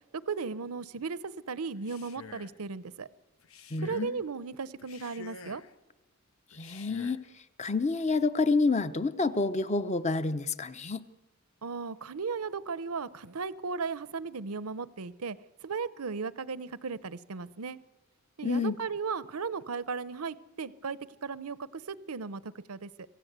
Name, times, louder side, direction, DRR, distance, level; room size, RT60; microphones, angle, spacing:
voice 1, 0.1-3.1 3.8-5.6 11.6-15.4 15.6-17.8 18.4-22.9, right 5 dB, 85° right, 17 dB, 0.8 m, -36 dB
Male speech man speaking, 1.7-2.6 3.4-4.2 4.8-5.8 6.5-7.3, left 4 dB, 70° left, 0.9 m, -49 dB
voice 2, 3.7-4.2 6.5-7.2 7.6-11.1 18.4-18.7, left 3 dB, 30° left, 12 dB, 0.8 m, -28 dB
26.0 x 16.5 x 8.1 m, 1.2 s
head